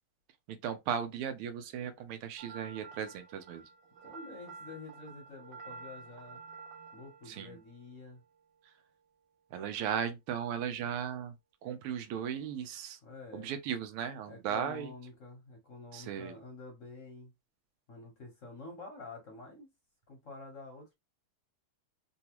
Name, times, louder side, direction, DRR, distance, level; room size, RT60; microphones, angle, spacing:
voice 1, 0.5-3.6 7.3-7.6 9.5-11.3 11.6-13.0 13.3-14.9 15.9-16.4, right 8 dB, 85° right, 1.6 m, -36 dB
sound 1, 2.4-8.6, right 4 dB, 65° right, 1.3 m, -51 dB
voice 2, 4.0-6.4 6.9-8.2 13.0-13.5 14.2-17.3 17.9-19.7 20.1-20.9, left 3 dB, 50° left, 0.9 m, -48 dB
3.9 x 2.3 x 2.9 m
omnidirectional pair, 2.4 m